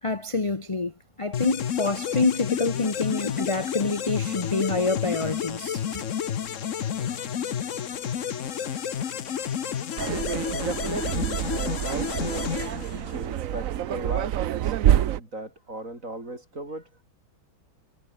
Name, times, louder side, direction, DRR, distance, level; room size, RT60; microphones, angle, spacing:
voice 1, 0.0-6.0, left 3 dB, 20° left, 1.0 m, -27 dB
sound 1, 1.3-13.4, left 8 dB, 50° left, 1.1 m, -31 dB
voice 2, 9.0-10.2 10.5-12.6 12.8-17.0, right 1 dB, 40° right, 7.8 m, -37 dB
sound 2, 10.0-15.2, right 12 dB, 70° right, 0.7 m, -27 dB
omnidirectional pair, 2.2 m